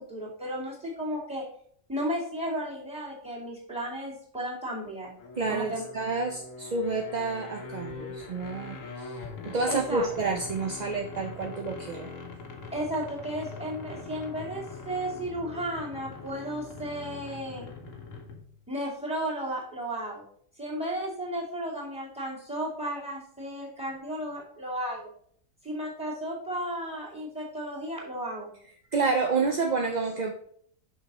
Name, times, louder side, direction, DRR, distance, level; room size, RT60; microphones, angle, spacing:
voice 1, 0.0-1.5 1.9-5.1 5.5-5.8 9.7-10.1 12.7-17.7 18.7-20.2 20.6-25.1 25.6-28.5, equal, 5° right, -2 dB, 2.5 m, -34 dB
sound 1, 5.2-18.6, left 4 dB, 75° left, 1.5 m, -42 dB
voice 2, 5.4-9.2 9.4-12.1 28.9-30.3, right 4 dB, 45° right, 3 dB, 0.6 m, -29 dB
6.2 x 5.8 x 4.2 m, 0.62 s
omnidirectional pair, 1.4 m